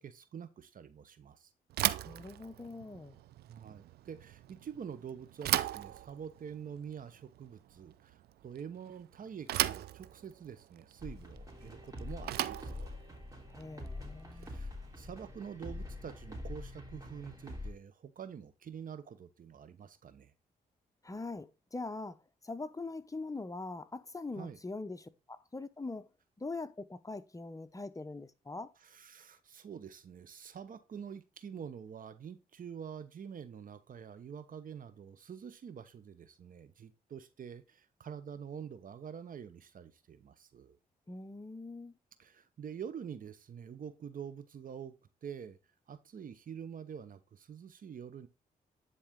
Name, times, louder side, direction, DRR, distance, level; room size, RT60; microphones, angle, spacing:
voice 1, 0.0-1.5 3.5-12.9 14.3-20.3 24.4-24.6 28.8-40.8 42.2-45.0 45.2-45.6 45.9-48.3, right 7 dB, 60° right, 1.0 m, -46 dB
Bicycle / Thump thud, 1.7-14.8, right 13 dB, 90° right, 0.5 m, -38 dB
voice 2, 2.0-3.2 13.5-14.5 21.0-22.2 22.4-26.1 26.4-28.7 41.1-41.9, left 3 dB, 20° left, 0.9 m, -42 dB
sound 1, 11.0-17.7, left 1 dB, 20° right, 3.0 m, -45 dB
10.0 x 4.1 x 3.7 m
cardioid pair, 65°, 16 cm